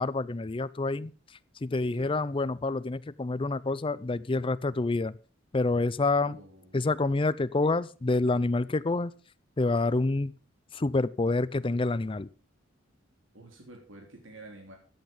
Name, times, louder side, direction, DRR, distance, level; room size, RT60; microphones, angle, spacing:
voice 1, 0.0-5.2 5.5-6.4 6.7-9.1 9.6-10.3 10.7-12.3, left 3 dB, 25° left, 17 dB, 0.5 m, -28 dB
voice 2, 6.2-6.9 13.3-14.8, right 2 dB, 75° right, 1 dB, 3.1 m, -49 dB
13.5 x 8.8 x 5.1 m, 0.36 s
head